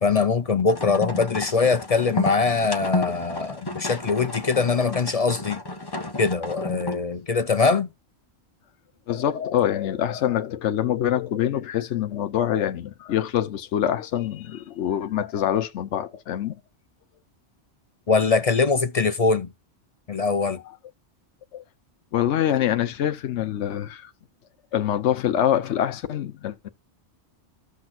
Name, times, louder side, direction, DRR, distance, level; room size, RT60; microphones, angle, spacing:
voice 1, 0.0-5.6 6.2-7.9 18.1-19.5 20.1-20.6, left 4 dB, 45° left, 0.5 m, -22 dB
sound 1, 0.7-7.1, left 2 dB, 25° left, 0.8 m, -32 dB
voice 2, 9.1-16.6 21.5-21.6 22.1-24.1 24.7-26.7, left 10 dB, 80° left, 1.0 m, -25 dB
14.5 x 6.1 x 2.4 m
omnidirectional pair, 1.2 m